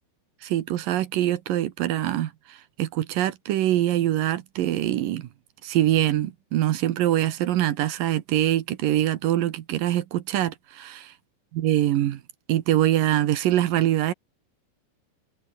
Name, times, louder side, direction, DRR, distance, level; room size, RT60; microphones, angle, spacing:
voice 1, 0.4-5.3 5.6-11.0 11.6-12.2 12.5-14.1, right 13 dB, 70° right, 2.8 m, -24 dB
omnidirectional pair, 4.2 m